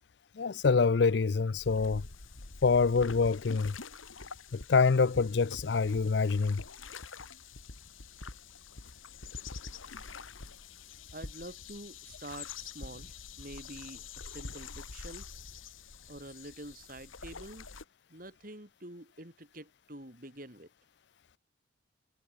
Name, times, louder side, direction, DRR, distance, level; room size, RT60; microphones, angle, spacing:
voice 1, 0.4-2.0 2.6-3.7 4.5-6.6, left 4 dB, 60° left, 0.5 m, -26 dB
sound 1, 1.6-17.8, left 4 dB, 90° left, 2.2 m, -46 dB
voice 2, 11.1-15.3 16.1-17.7 18.1-20.7, right 1 dB, 45° right, 5.2 m, -47 dB
head